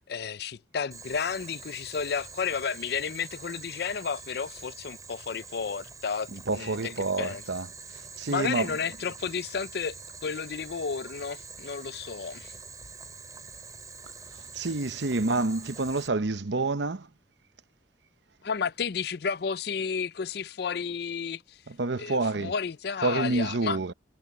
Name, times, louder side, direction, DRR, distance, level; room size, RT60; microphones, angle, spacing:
voice 1, 0.1-7.4 8.3-12.5 18.4-21.6 22.0-23.8, left 6 dB, 60° left, 0.5 m, -32 dB
Boiling, 0.9-16.1, right 4 dB, 20° right, 5.5 m, -45 dB
voice 2, 6.3-7.7 8.2-8.7 14.5-17.1 21.7-22.5 23.0-23.9, right 3 dB, 75° right, 0.9 m, -28 dB
head